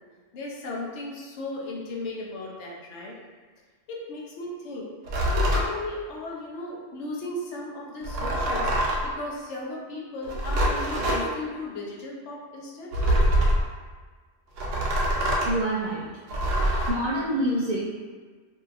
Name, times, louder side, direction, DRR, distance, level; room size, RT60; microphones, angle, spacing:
voice 1, 0.3-3.1 3.9-4.9 5.5-13.0, left 2 dB, 70° left, -2 dB, 0.9 m, -36 dB
sound 1, 5.0-5.7 8.0-9.1 10.2-11.2 12.9-13.7 14.6-15.5 16.3-16.9, equal, 90° right, 1.0 m, -24 dB
voice 2, 15.4-16.0 16.9-17.9, right 1 dB, 65° right, -7 dB, 0.4 m, -26 dB
2.8 x 2.7 x 2.4 m, 1.4 s
omnidirectional pair, 1.3 m